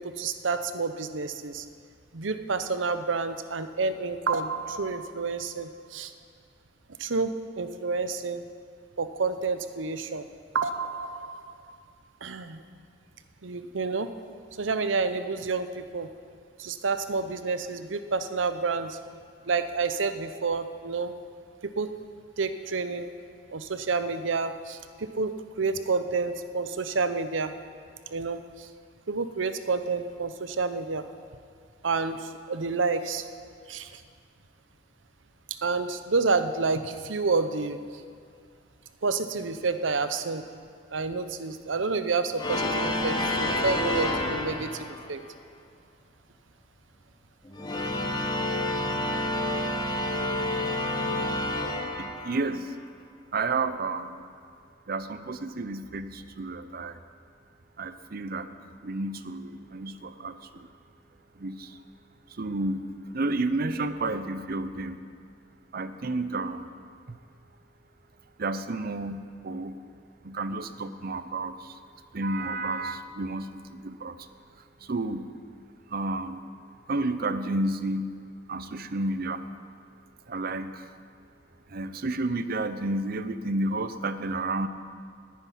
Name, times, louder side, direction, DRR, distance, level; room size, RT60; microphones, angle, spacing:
voice 1, 0.0-1.7 2.1-6.1 7.0-7.3 7.6-8.4 9.0-10.2 10.5-11.8 12.2-12.6 13.4-14.1 14.6-16.1 16.6-19.0 19.4-21.1 21.6-21.9 22.4-23.1 23.5-27.5 28.1-28.7 29.1-31.0 31.8-33.2 33.7-34.0 35.6-37.8 39.0-40.4 40.9-45.2, right 4 dB, 80° right, 10 dB, 0.8 m, -29 dB
sound 1, 42.4-45.2 47.4-52.6, left 1 dB, 20° left, 1.1 m, -29 dB
voice 2, 52.0-52.7 53.3-54.2 54.9-57.0 57.8-58.5 58.8-60.7 61.4-61.8 62.4-62.8 63.1-65.0 65.7-66.7 67.1-67.2 68.4-69.8 70.2-71.8 72.1-74.2 74.9-75.3 75.9-76.4 76.9-78.1 78.5-79.4 80.3-80.8 81.7-84.7, right 2 dB, 50° right, 11 dB, 0.7 m, -31 dB
10.5 x 9.6 x 9.9 m, 2.2 s
head